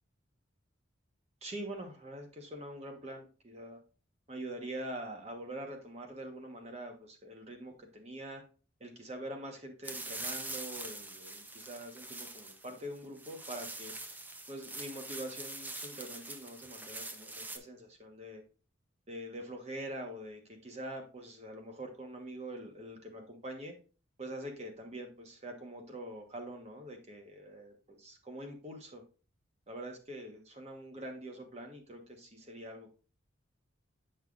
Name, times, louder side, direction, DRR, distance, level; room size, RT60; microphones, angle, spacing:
voice 1, 1.4-3.8 4.3-8.4 8.8-13.9 14.5-18.4 19.1-23.7 24.2-29.0 29.7-32.9, right 1 dB, 30° right, 3 dB, 1.0 m, -44 dB
sound 1, 9.8-17.6, right 2 dB, 10° right, 0.4 m, -44 dB
8.1 x 5.5 x 2.4 m, 0.35 s
head